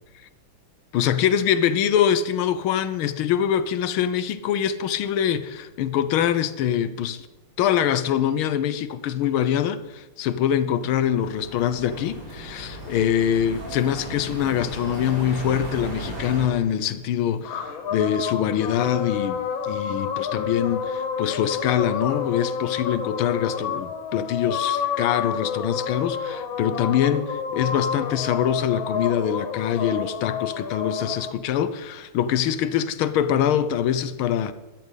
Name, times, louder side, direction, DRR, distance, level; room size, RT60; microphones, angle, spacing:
voice 1, 0.9-7.3 7.6-34.5, left 9 dB, 90° left, 1.7 m, -24 dB
sound 1, 10.6-16.5, right 1 dB, 50° right, 4.8 m, -36 dB
sound 2, 17.4-31.3, left 6 dB, 75° left, 1.9 m, -29 dB
13.5 x 12.0 x 5.6 m
omnidirectional pair, 2.2 m